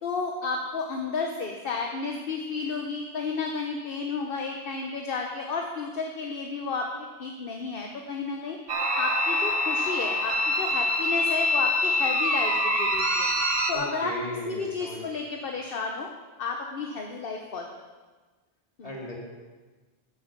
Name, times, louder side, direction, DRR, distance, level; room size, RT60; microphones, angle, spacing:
voice 1, 0.0-8.6 9.0-13.3 13.7-14.1 14.5-16.1 16.4-17.8 18.8-18.9, left 4 dB, 60° left, 2 dB, 1.1 m, -32 dB
sound 1, 8.7-13.7, left 1 dB, 65° right, 1.3 m, -25 dB
voice 2, 13.7-15.1 18.8-19.2, equal, 35° left, -3 dB, 2.7 m, -36 dB
10.5 x 8.6 x 6.8 m, 1.3 s
omnidirectional pair, 1.1 m